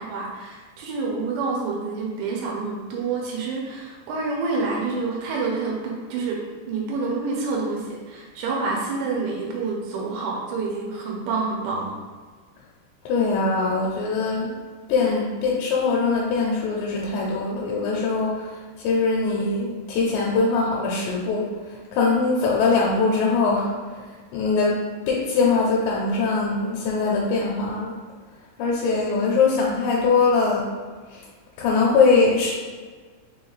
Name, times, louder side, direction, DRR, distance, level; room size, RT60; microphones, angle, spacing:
voice 1, 0.0-6.4 6.7-12.0, right 4 dB, 90° right, -3 dB, 2.9 m, -28 dB
voice 2, 13.1-14.5 14.9-28.0 28.6-30.7 31.1-31.3 31.6-32.5, left 4 dB, 85° left, -3 dB, 2.8 m, -22 dB
6.4 x 2.3 x 3.1 m, 1.5 s
omnidirectional pair, 5.0 m